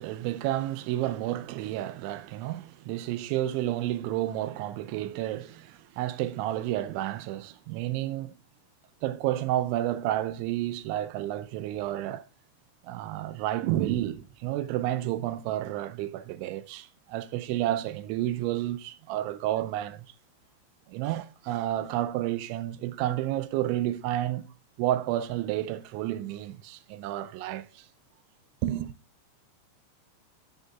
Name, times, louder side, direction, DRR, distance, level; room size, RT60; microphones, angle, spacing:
voice 1, 0.0-8.3 9.0-12.2 12.8-20.1 20.9-24.4 24.8-27.9 28.6-28.9, right 13 dB, 90° right, 3.0 m, -30 dB
14.5 x 6.5 x 2.4 m
omnidirectional pair, 5.2 m